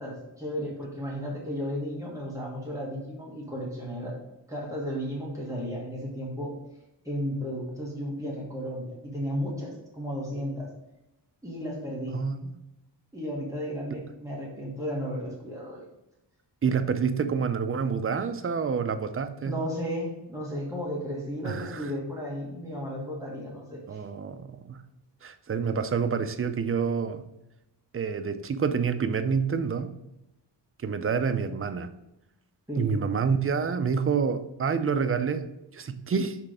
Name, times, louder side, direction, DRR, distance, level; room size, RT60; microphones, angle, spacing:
voice 1, 0.0-4.2 4.5-6.6 7.0-10.7 11.4-12.2 13.1-15.9 19.4-24.0 32.7-32.9, equal, 5° right, 1.3 m, -34 dB
voice 2, 12.1-12.5 13.9-14.0 16.6-19.5 21.4-21.9 23.9-24.8 25.2-27.2 27.9-30.0 30.8-31.9 32.8-35.5 35.7-36.4, right 6 dB, 35° right, 0.4 m, -28 dB
6.0 x 3.3 x 4.9 m
wide cardioid pair, 135°, 43 cm